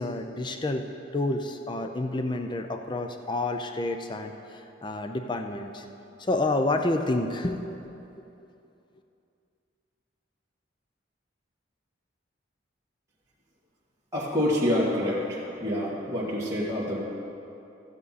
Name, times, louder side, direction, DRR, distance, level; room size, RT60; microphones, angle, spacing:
voice 1, 0.0-5.9 6.2-8.2, left 2 dB, 25° left, 6 dB, 0.5 m, -29 dB
voice 2, 14.1-17.0, left 1 dB, 15° right, -9 dB, 1.9 m, -27 dB
15.0 x 7.9 x 4.2 m, 2.8 s
head